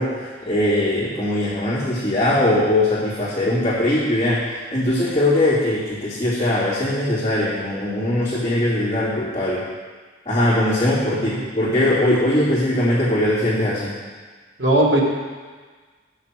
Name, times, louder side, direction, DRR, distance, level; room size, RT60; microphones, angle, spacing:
voice 1, 0.0-9.6 10.2-13.9, left 1 dB, 20° left, -16 dB, 2.9 m, -21 dB
voice 2, 11.1-11.5 14.6-15.0, right 1 dB, 85° right, -2 dB, 1.7 m, -19 dB
6.9 x 6.9 x 6.1 m, 1.5 s
head